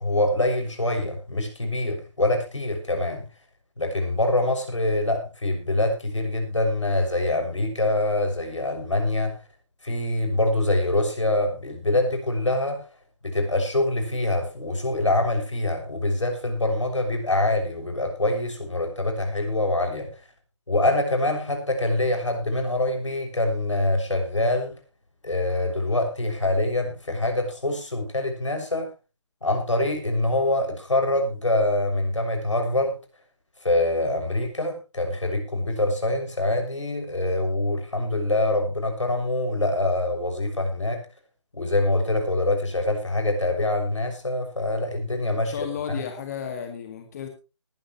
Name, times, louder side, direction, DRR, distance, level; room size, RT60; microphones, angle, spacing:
voice 1, 0.0-3.2 3.8-9.3 9.8-12.8 13.2-20.1 20.7-24.7 25.2-28.9 29.4-32.9 33.6-41.0 41.5-46.0, left 1 dB, 80° left, 5 dB, 6.5 m, -25 dB
voice 2, 45.3-47.3, left 8 dB, 35° left, 5 dB, 2.1 m, -33 dB
20.0 x 11.5 x 3.1 m, 0.29 s
figure-of-eight pair, 145°, 16 cm